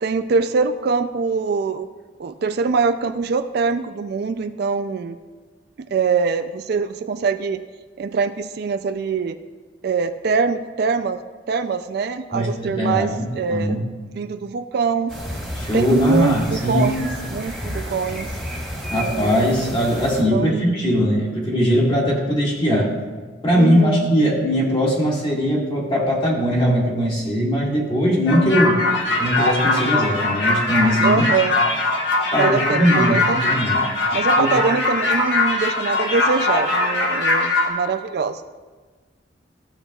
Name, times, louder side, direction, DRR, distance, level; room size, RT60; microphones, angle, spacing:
voice 1, 0.0-1.9 2.2-5.2 5.9-7.6 8.0-9.4 9.8-11.2 11.5-13.9 14.1-15.1 15.7-18.3 18.9-19.3 20.3-20.7 23.5-24.1 31.0-31.6 32.4-33.6 34.1-38.4, right 5 dB, 55° right, 10 dB, 0.3 m, -23 dB
voice 2, 12.3-13.8 15.6-16.9 18.9-22.9 23.4-28.8 29.2-31.2 32.3-33.8 34.4-34.5, equal, 25° left, -4 dB, 1.9 m, -20 dB
sound 1, 15.1-20.2, equal, 5° left, 1.7 m, -31 dB
sound 2, 28.3-37.7, left 2 dB, 65° left, 1.3 m, -21 dB
14.0 x 7.0 x 2.3 m, 1.4 s
head